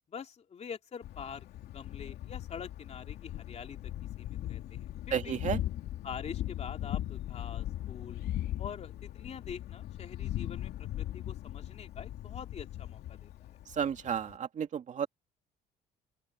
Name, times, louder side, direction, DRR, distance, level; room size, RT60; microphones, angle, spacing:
voice 1, 0.1-3.9 4.2-5.4 6.0-8.2 8.6-13.6, left 7 dB, 40° left, 3.2 m, -45 dB
Thunder, 1.0-14.4, left 13 dB, 70° left, 2.8 m, -39 dB
voice 2, 5.1-5.6 13.7-15.1, right 8 dB, 45° right, 2.4 m, -32 dB
open air
cardioid pair, 110°, 17 cm